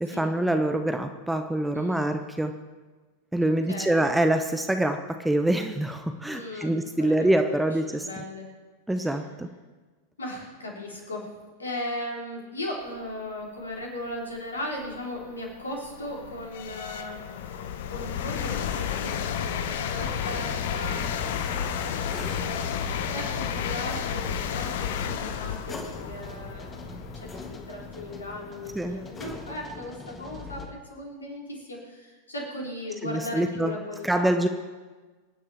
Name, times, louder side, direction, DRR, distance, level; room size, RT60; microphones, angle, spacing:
voice 1, 0.0-2.5 3.3-8.2 8.9-9.5 28.7-29.0 33.0-33.7 34.0-34.5, right 1 dB, 5° right, 6 dB, 0.8 m, -25 dB
voice 2, 1.7-2.1 3.7-4.0 6.3-7.6 7.9-8.5 9.0-9.2 10.2-11.3 11.6-17.6 17.9-21.0 21.5-26.8 27.1-34.3, left 1 dB, 75° left, -1 dB, 3.5 m, -37 dB
sound 1, 14.1-14.2 14.8-29.6, left 8 dB, 55° left, 0.8 m, -32 dB
sound 2, 19.8-30.7, left 3 dB, 20° left, 1.6 m, -41 dB
25.5 x 9.9 x 3.4 m, 1.3 s
figure-of-eight pair, 90°, 0 cm